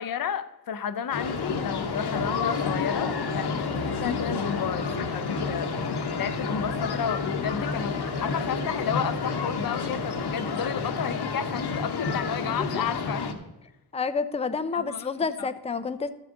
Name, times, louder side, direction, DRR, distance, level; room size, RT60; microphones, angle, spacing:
voice 1, 0.0-13.4 14.8-15.1 15.4-15.5, left 8 dB, 60° left, 11 dB, 0.7 m, -32 dB
sound 1, 1.1-13.3, left 4 dB, 75° left, 1.1 m, -29 dB
voice 2, 13.9-16.1, left 5 dB, 15° left, 11 dB, 0.5 m, -29 dB
13.5 x 7.0 x 3.8 m, 1.0 s
wide cardioid pair, 100°, 40 cm